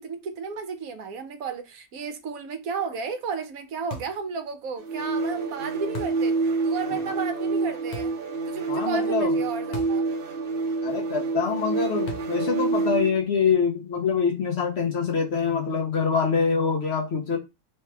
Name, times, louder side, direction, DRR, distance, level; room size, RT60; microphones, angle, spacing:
voice 1, 0.0-6.3 6.6-8.1 8.5-10.0, right 5 dB, 75° right, 1.2 m, -33 dB
sound 1, 3.9-4.3 5.9-6.3 7.9-8.3 9.7-10.1 10.4-10.5 12.1-12.5, left 1 dB, 85° left, 1.5 m, -37 dB
sound 2, 4.8-13.2, right 3 dB, 45° right, 0.9 m, -27 dB
voice 2, 8.7-9.3 10.8-17.4, left 5 dB, 55° left, 0.9 m, -25 dB
3.3 x 2.9 x 4.5 m
omnidirectional pair, 1.6 m